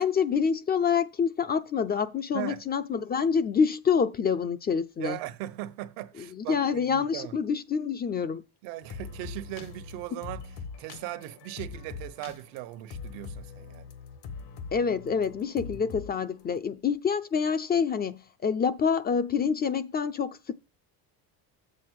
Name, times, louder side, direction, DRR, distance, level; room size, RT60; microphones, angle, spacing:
voice 1, 0.0-5.2 6.3-8.4 14.7-20.6, left 6 dB, 25° left, 0.4 m, -27 dB
voice 2, 5.0-7.4 8.6-13.9, right 15 dB, 85° right, 1.0 m, -38 dB
sound 1, 8.8-16.1 16.4-16.5, left 5 dB, 65° left, 1.4 m, -42 dB
7.7 x 4.2 x 6.3 m
cardioid pair, 140°, 43 cm